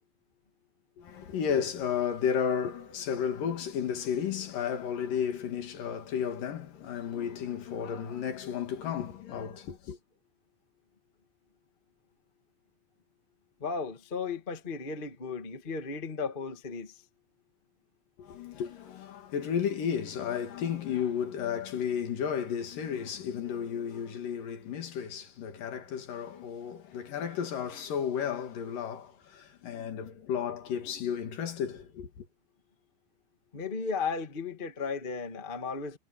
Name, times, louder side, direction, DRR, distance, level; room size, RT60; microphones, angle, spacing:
voice 1, 1.0-10.0 18.2-32.3, left 8 dB, 70° left, 3.7 m, -33 dB
voice 2, 13.6-17.0 33.5-36.0, left 5 dB, 25° left, 1.1 m, -35 dB
omnidirectional pair, 4.1 m